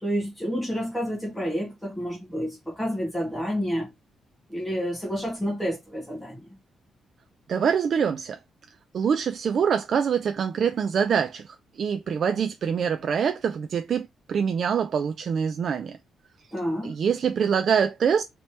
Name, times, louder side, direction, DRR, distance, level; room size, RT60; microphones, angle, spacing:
voice 1, 0.0-3.9 4.5-6.5 16.5-16.9, equal, 5° left, 1.1 m, -29 dB
voice 2, 7.5-8.4 8.9-16.0 16.8-18.2, right 7 dB, 45° right, 0.3 m, -25 dB
3.2 x 2.9 x 4.3 m
cardioid pair, 170°, 0 cm